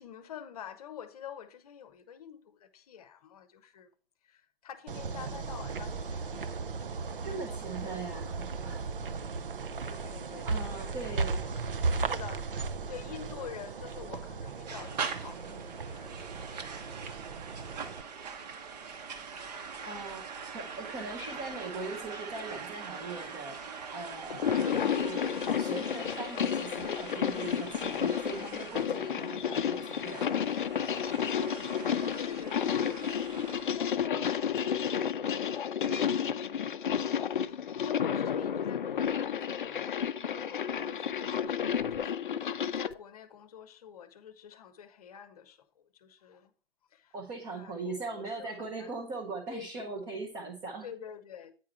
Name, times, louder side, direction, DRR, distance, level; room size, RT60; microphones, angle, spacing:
voice 1, 0.0-3.9 4.2-6.5 6.8-8.1 9.8-12.5 12.9-17.4 19.4-19.8 32.2-36.3 37.3-45.6 45.9-46.5 46.9-47.1 47.5-48.9 49.5-50.1 50.8-51.5, left 8 dB, 40° left, 0.8 m, -48 dB
sound 1, 4.9-18.0, right 4 dB, 60° right, 0.7 m, -36 dB
voice 2, 7.2-8.8 10.4-11.5 19.8-30.3 47.1-50.9, right 3 dB, 15° right, 0.7 m, -40 dB
sound 2, 14.7-33.8, right 6 dB, 40° right, 1.1 m, -43 dB
sound 3, 24.3-42.9, left 8 dB, 55° left, 0.5 m, -31 dB
9.0 x 4.8 x 4.5 m
figure-of-eight pair, 125°, 30 cm